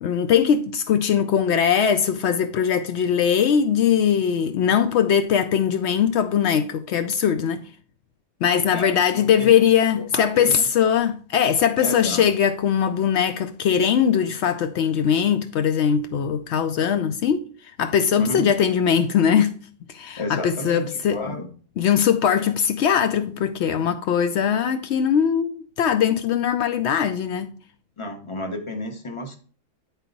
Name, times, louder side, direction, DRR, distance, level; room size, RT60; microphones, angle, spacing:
voice 1, 0.0-7.6 8.4-17.5 17.8-19.5 19.9-21.4 21.8-27.5, left 8 dB, 90° left, 0.5 m, -21 dB
voice 2, 8.7-9.5 10.1-10.7 11.8-12.3 18.2-18.5 20.2-21.5 28.0-29.3, left 2 dB, 20° left, 0.9 m, -31 dB
9.8 x 4.1 x 4.0 m
omnidirectional pair, 1.7 m